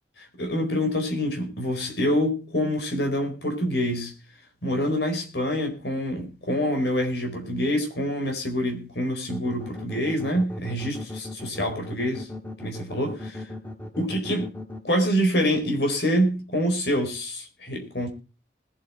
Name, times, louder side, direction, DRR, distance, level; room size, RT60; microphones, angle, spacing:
voice 1, 0.2-4.1 4.6-12.3 12.6-13.5 14.0-14.4 14.8-18.1, equal, 70° left, 4.5 m, -26 dB
sound 1, 9.3-14.8, left 1 dB, 10° left, 1.5 m, -37 dB
20.5 x 8.1 x 4.4 m
head